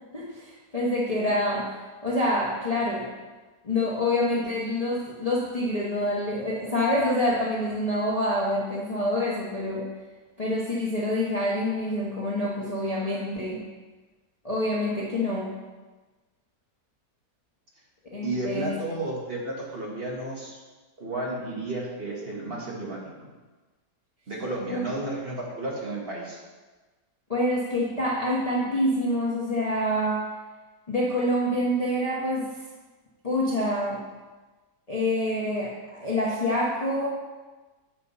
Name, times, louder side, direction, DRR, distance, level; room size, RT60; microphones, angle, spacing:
voice 1, 0.1-1.7 2.0-3.1 3.6-9.8 10.4-13.6 14.4-15.5 18.1-18.7 24.7-24.8 27.3-30.2 30.9-32.5 33.2-34.0 34.9-37.1, left 1 dB, 25° left, -6 dB, 1.0 m, -26 dB
voice 2, 18.2-20.6 21.0-23.3 24.3-26.4, right 2 dB, 35° right, -4 dB, 1.5 m, -32 dB
7.4 x 4.6 x 5.5 m, 1.3 s
omnidirectional pair, 1.7 m